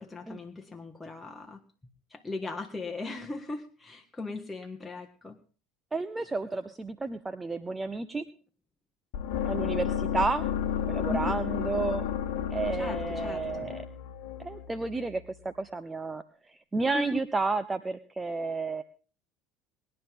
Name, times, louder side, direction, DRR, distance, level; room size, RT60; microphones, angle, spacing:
voice 1, 0.0-1.6 2.1-5.4 11.1-11.7 12.7-13.7 16.9-17.2, left 2 dB, 15° left, 2 dB, 1.5 m, -38 dB
voice 2, 5.9-8.2 9.4-10.4 10.9-12.0 12.5-13.9 14.4-16.2 16.5-18.8, right 3 dB, 20° right, 13 dB, 0.8 m, -31 dB
sound 1, 9.1-15.2, left 9 dB, 70° left, 1.2 m, -32 dB
20.0 x 11.0 x 3.5 m, 0.37 s
hypercardioid pair, 70°, 0 cm